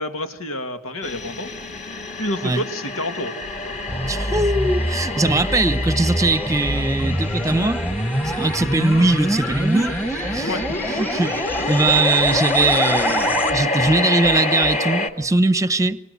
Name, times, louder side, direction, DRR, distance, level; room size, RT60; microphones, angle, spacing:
voice 1, 0.0-1.5 2.2-3.3 3.6-3.8 10.4-11.0 11.6-11.7, left 1 dB, 85° left, 2.5 m, -29 dB
sound 1, 1.0-15.1, left 2 dB, 35° left, 2.3 m, -27 dB
sound 2, 3.4-13.5, equal, 10° left, 1.5 m, -25 dB
voice 2, 4.1-7.8 8.2-10.6 10.9-16.0, right 2 dB, 15° right, 0.9 m, -21 dB
sound 3, 5.0-14.8, equal, 60° left, 4.1 m, -37 dB
26.0 x 24.0 x 8.3 m
head